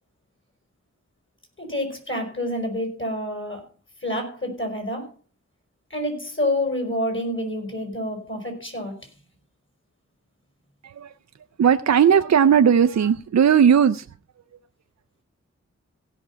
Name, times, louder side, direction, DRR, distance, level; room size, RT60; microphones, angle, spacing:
voice 1, 1.6-3.6 4.0-5.1 5.9-9.0, left 1 dB, 45° left, 5.1 m, -28 dB
voice 2, 11.6-14.1, right 8 dB, 65° right, 0.5 m, -17 dB
16.5 x 6.0 x 5.6 m
wide cardioid pair, 85°, 29 cm